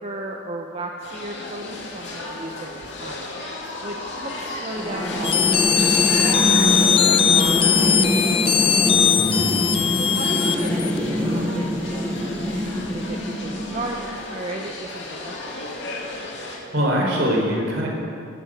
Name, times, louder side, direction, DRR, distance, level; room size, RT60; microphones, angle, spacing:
voice 1, 0.0-3.3 3.8-8.5 9.9-12.6 12.9-15.7, right 2 dB, 35° right, 1 dB, 0.9 m, -35 dB
sound 1, 1.0-16.6, left 2 dB, 60° left, 2.7 m, -34 dB
sound 2, 4.8-14.1, equal, 5° left, 1.2 m, -24 dB
sound 3, 5.2-11.0, left 8 dB, 30° left, 0.3 m, -20 dB
voice 2, 9.2-9.5 16.4-17.9, equal, 65° right, -1 dB, 4.4 m, -23 dB
15.0 x 11.0 x 7.8 m, 2.6 s
head